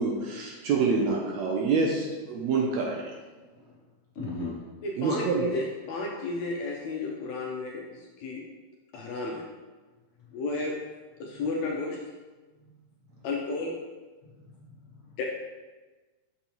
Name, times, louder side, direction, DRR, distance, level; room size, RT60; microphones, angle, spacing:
voice 1, 0.0-3.1 5.0-5.4, right 4 dB, 75° right, -1 dB, 1.7 m, -27 dB
voice 2, 4.2-4.6 11.2-11.5 12.6-13.2 14.2-15.2, left 2 dB, 55° left, -6 dB, 1.8 m, -41 dB
voice 3, 4.8-8.4 8.9-9.4 10.3-10.7 11.2-12.0 13.2-13.8 15.2-15.3, left 3 dB, 75° left, -1 dB, 1.7 m, -33 dB
7.0 x 5.5 x 3.0 m, 1.3 s
omnidirectional pair, 3.6 m